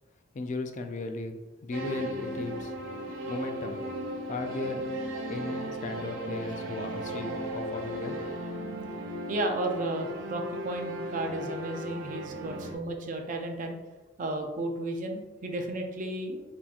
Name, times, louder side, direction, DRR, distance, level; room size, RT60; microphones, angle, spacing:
voice 1, 0.3-2.7 3.2-3.8 4.3-4.9 5.3-8.2, left 2 dB, 40° left, 6 dB, 0.3 m, -36 dB
sound 1, 1.7-12.7, equal, 85° right, 0.6 m, -36 dB
voice 2, 9.3-13.8 14.2-16.4, right 2 dB, 40° right, 4 dB, 0.4 m, -33 dB
4.0 x 2.7 x 2.4 m, 1.2 s
head